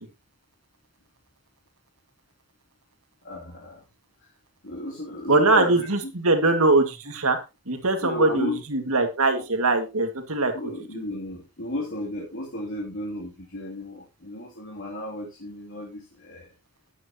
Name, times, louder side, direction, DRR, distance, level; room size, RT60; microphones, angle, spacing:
voice 1, 3.2-3.8 4.6-6.1 8.0-8.6 10.5-16.5, left 1 dB, 60° left, -4 dB, 2.8 m, -33 dB
voice 2, 5.3-7.4 7.7-10.5 10.9-11.0, right 2 dB, 70° right, 6 dB, 2.0 m, -22 dB
12.0 x 9.6 x 2.9 m, 0.26 s
head